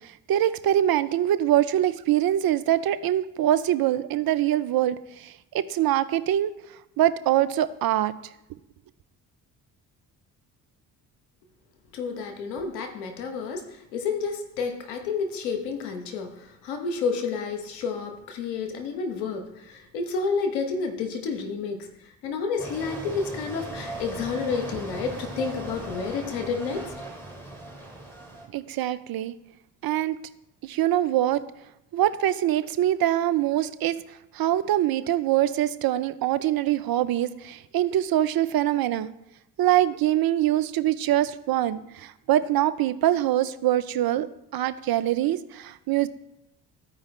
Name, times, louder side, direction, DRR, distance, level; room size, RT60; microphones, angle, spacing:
voice 1, 0.3-6.5 7.0-8.1 28.5-29.3 29.8-30.2 30.6-31.4 31.9-34.0 34.3-39.1 39.6-44.3 44.5-46.1, right 12 dB, 45° right, 14 dB, 0.6 m, -24 dB
voice 2, 11.9-21.9 22.2-26.9, left 5 dB, 85° left, 5 dB, 1.1 m, -30 dB
sound 1, 22.6-28.5, right 2 dB, 5° left, 2.7 m, -38 dB
14.5 x 4.8 x 3.2 m, 0.86 s
hypercardioid pair, 50°, 49 cm